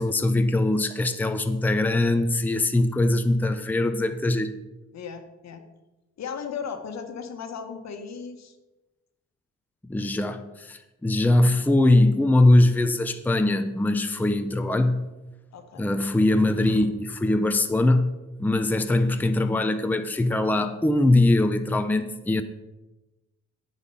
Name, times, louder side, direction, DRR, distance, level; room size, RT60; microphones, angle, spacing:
voice 1, 0.0-4.5 9.9-15.1 15.7-22.4, left 2 dB, 5° left, 7 dB, 0.7 m, -22 dB
voice 2, 4.9-5.6 6.2-8.5 15.5-15.9 16.3-16.4 16.6-16.7, left 6 dB, 60° left, 7 dB, 1.5 m, -36 dB
9.7 x 8.1 x 5.6 m, 1.1 s
cardioid pair, 90°, 30 cm